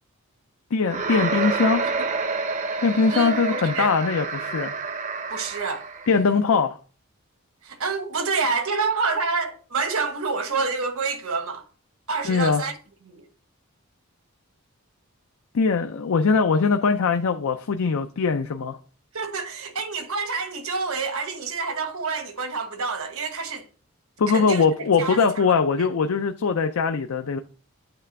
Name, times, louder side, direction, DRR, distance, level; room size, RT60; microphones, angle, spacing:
voice 1, 0.7-1.8 2.8-4.7 6.1-6.8 12.2-12.6 15.5-18.8 24.2-27.4, left 5 dB, 70° left, 0.5 m, -21 dB
sound 1, 0.8-6.2, right 4 dB, 35° right, 0.6 m, -28 dB
voice 2, 3.1-4.0 5.3-5.9 7.6-11.6 12.1-12.8 13.0-13.3 19.1-23.7 24.3-24.6 25.0-25.9, right 4 dB, 70° right, 1.2 m, -28 dB
8.9 x 3.3 x 5.8 m
head